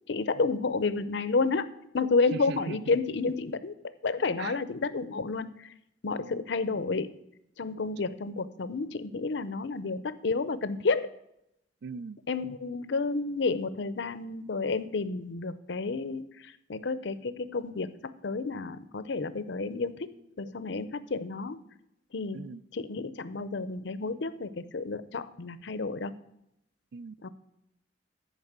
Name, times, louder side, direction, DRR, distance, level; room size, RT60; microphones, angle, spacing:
voice 1, 0.1-1.7 1.9-3.7 4.0-5.7 6.0-7.2 7.6-11.1 12.3-21.6 22.1-26.2 27.2-27.3, left 4 dB, 70° left, 14 dB, 0.6 m, -31 dB
voice 2, 2.3-3.0 4.4-4.6 6.1-6.5 11.8-12.2 22.3-22.6 26.9-27.2, right 5 dB, 65° right, 18 dB, 0.4 m, -40 dB
11.0 x 5.3 x 8.0 m, 0.81 s
head